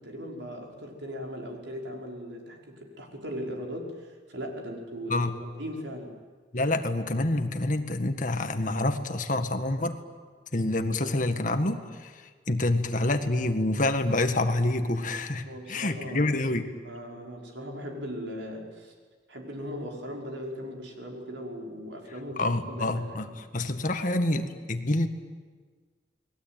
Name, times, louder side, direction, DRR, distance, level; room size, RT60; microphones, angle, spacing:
voice 1, 0.0-6.2 15.4-16.4 16.8-18.9 19.3-23.3, equal, 80° right, 1 dB, 5.4 m, -38 dB
voice 2, 6.5-10.0 10.5-12.1 12.5-16.6 22.4-23.3 23.5-25.1, left 2 dB, 45° left, 7 dB, 1.8 m, -27 dB
30.0 x 21.5 x 9.3 m, 1.5 s
head